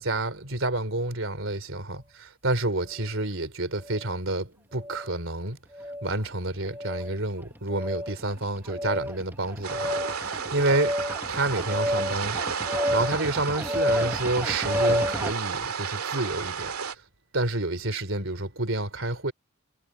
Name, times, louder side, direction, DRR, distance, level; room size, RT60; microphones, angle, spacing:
voice 1, 0.0-2.0 2.4-5.6 6.0-11.0 11.3-12.4 12.9-16.7 17.3-19.3, right 2 dB, 60° right, 3.6 m, -29 dB
sound 1, 3.8-4.1 4.8-5.1 5.7-6.1 6.7-7.2 7.7-8.2 8.7-15.3, equal, 10° right, 1.5 m, -30 dB
sound 2, 9.6-16.9, right 6 dB, 80° right, 2.3 m, -32 dB
head